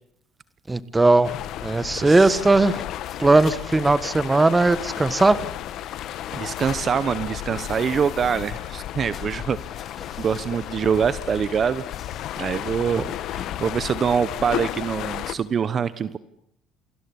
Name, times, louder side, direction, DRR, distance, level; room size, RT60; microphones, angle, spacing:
voice 1, 0.7-1.3 1.6-2.8 3.2-5.4 13.0-13.1, right 2 dB, 15° right, 15 dB, 1.4 m, -18 dB
sound 1, 1.2-15.3, left 12 dB, 60° left, 1.4 m, -33 dB
voice 2, 1.9-2.4 6.3-9.6 10.2-11.8 12.4-16.2, right 7 dB, 35° right, 15 dB, 1.1 m, -25 dB
sound 2, 3.0-15.0, left 7 dB, 40° left, 3.9 m, -46 dB
28.0 x 20.5 x 9.9 m, 0.73 s
cardioid pair, 130°, 0 cm